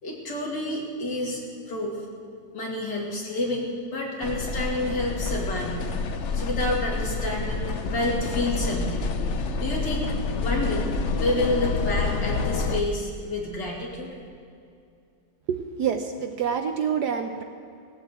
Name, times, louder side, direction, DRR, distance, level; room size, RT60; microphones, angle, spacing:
voice 1, 0.0-1.4 1.7-2.0 2.5-5.8 6.3-9.0 9.6-10.1 10.4-10.8 11.2-14.1, left 2 dB, 60° left, -2 dB, 3.1 m, -29 dB
sound 1, 4.2-12.8, left 3 dB, 85° left, 0.6 m, -28 dB
voice 2, 15.5-17.4, right 7 dB, 65° right, 7 dB, 1.1 m, -27 dB
17.5 x 8.0 x 8.2 m, 2.4 s
omnidirectional pair, 2.2 m